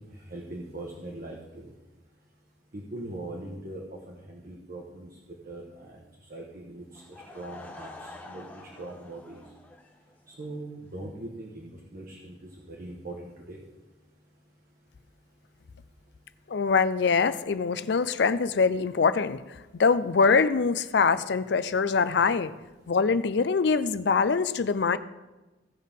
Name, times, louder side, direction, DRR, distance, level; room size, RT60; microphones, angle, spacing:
voice 1, 0.1-1.7 2.7-5.2 5.4-6.0 6.3-7.0 7.3-9.4 10.3-13.6, right 1 dB, 50° right, -1 dB, 1.2 m, -41 dB
Laughter / Crowd, 6.9-10.5, left 2 dB, 10° left, 0.9 m, -47 dB
voice 2, 16.5-19.4 19.8-22.5 22.9-25.0, left 5 dB, 65° left, 14 dB, 0.5 m, -23 dB
16.5 x 5.6 x 3.6 m, 1.1 s
head